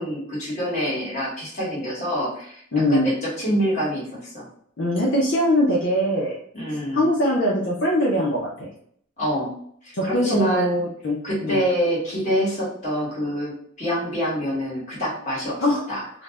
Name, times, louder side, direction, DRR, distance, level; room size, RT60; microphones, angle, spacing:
voice 1, 0.0-2.6 2.9-4.4 6.5-7.1 9.2-9.5 9.8-10.8 11.2-15.6 15.9-16.2, equal, 35° left, -6 dB, 1.2 m, -26 dB
voice 2, 2.7-3.0 4.8-6.4 6.9-8.7 10.0-11.2 11.4-11.6 15.6-15.8, equal, 65° left, -4 dB, 0.6 m, -22 dB
2.5 x 2.1 x 3.4 m, 0.64 s
head